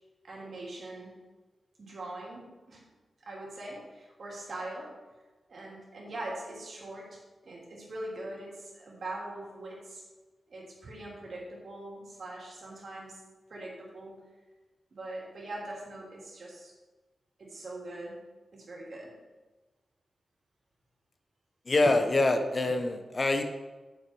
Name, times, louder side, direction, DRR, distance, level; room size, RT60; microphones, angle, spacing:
voice 1, 0.2-1.1 1.8-2.8 3.2-4.9 5.5-10.0 10.5-13.2 13.5-14.1 14.9-16.7 17.4-18.2 18.5-19.1, right 1 dB, 55° right, -3 dB, 2.9 m, -42 dB
voice 2, 21.7-23.4, left 2 dB, 30° left, 6 dB, 0.8 m, -25 dB
8.7 x 7.0 x 4.5 m, 1.2 s
wide cardioid pair, 145°, 0 cm